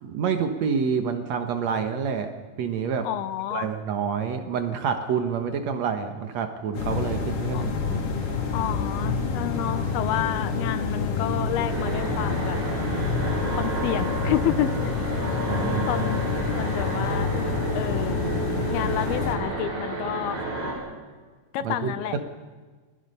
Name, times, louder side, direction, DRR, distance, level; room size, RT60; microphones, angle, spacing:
voice 1, 0.0-2.3 2.6-3.1 3.5-8.1 15.5-16.1 21.6-21.9, right 6 dB, 85° right, 7 dB, 1.5 m, -28 dB
voice 2, 3.0-3.7 7.5-7.7 8.5-12.6 13.5-14.9 15.9-16.2 16.6-17.3 17.7-18.2 18.7-20.4 21.5-22.2, left 11 dB, 75° left, 11 dB, 2.6 m, -29 dB
sound 1, 6.7-19.4, left 5 dB, 50° left, 3.9 m, -28 dB
sound 2, 8.5-14.6, right 1 dB, 10° left, 3.0 m, -40 dB
sound 3, 11.6-20.7, right 2 dB, 60° right, 8.1 m, -31 dB
29.5 x 22.0 x 5.5 m, 1.4 s
omnidirectional pair, 5.1 m